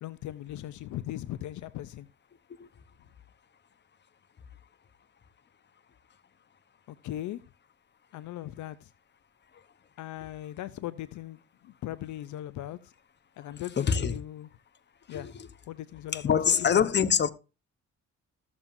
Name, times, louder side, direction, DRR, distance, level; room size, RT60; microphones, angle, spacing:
voice 1, 0.0-2.1 6.9-7.4 8.1-8.9 10.0-12.9 13.4-14.5 15.1-15.3 15.7-16.9, left 13 dB, 75° left, 0.6 m, -39 dB
voice 2, 13.8-14.2 15.1-15.5 16.1-17.3, left 7 dB, 35° left, 0.9 m, -25 dB
14.5 x 7.3 x 2.6 m
cardioid pair, 90°, 30 cm